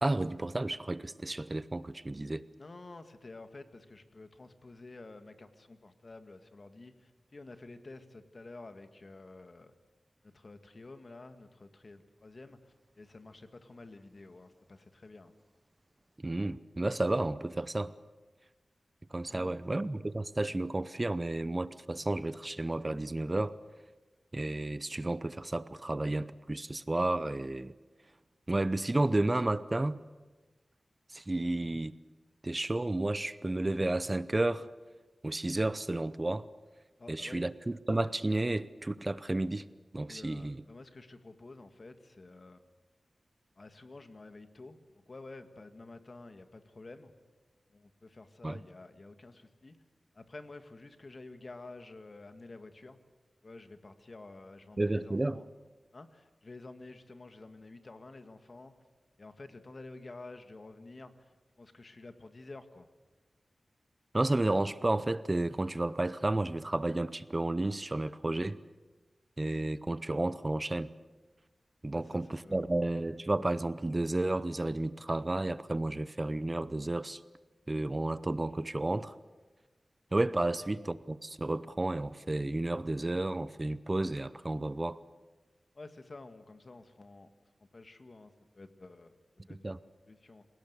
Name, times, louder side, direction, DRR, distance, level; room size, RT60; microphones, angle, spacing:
voice 1, 0.0-2.4 16.2-17.9 19.1-23.6 24.3-27.7 28.5-29.9 31.1-31.9 32.4-34.7 35.2-36.5 37.1-39.7 39.9-40.6 48.4-48.6 54.8-55.4 64.1-68.6 69.4-70.9 71.8-77.2 77.7-79.1 80.1-85.0 89.6-89.8, right 2 dB, 30° right, 16 dB, 0.7 m, -32 dB
voice 2, 2.6-9.7 10.2-15.3 19.3-19.6 37.0-37.4 40.1-42.6 43.6-47.1 47.7-49.8 50.1-53.0 53.4-55.5 55.9-58.7 59.2-61.3 61.6-62.9 71.9-72.7 80.4-80.6 85.8-87.3 87.6-89.2 89.5-89.6 90.1-90.5, left 2 dB, 50° left, 8 dB, 1.9 m, -50 dB
27.5 x 17.5 x 8.2 m, 1.2 s
wide cardioid pair, 70°, 0 cm